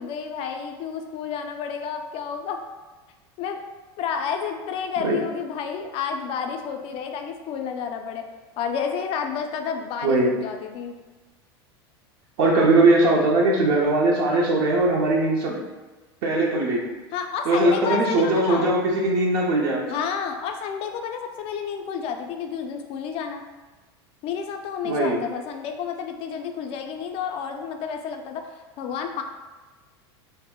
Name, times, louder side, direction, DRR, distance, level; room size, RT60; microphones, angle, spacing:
voice 1, 0.0-2.6 3.4-3.6 4.0-8.2 8.6-10.9 17.1-18.7 19.9-23.4 24.2-29.2, left 6 dB, 45° left, 5 dB, 0.4 m, -30 dB
voice 2, 12.4-15.6 16.2-16.8 17.5-19.8 24.8-25.2, right 2 dB, 65° right, -2 dB, 0.5 m, -20 dB
2.1 x 2.0 x 3.6 m, 1.2 s
hypercardioid pair, 105°, 14 cm